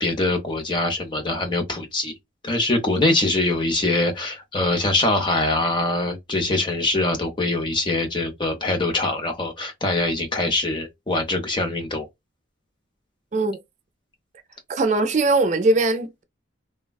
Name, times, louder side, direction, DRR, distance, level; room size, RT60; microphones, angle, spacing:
voice 1, 0.0-2.1 2.4-12.1, left 2 dB, 25° left, 0.6 m, -23 dB
voice 2, 14.7-16.2, right 2 dB, 40° right, 0.4 m, -20 dB
3.3 x 2.1 x 2.2 m
head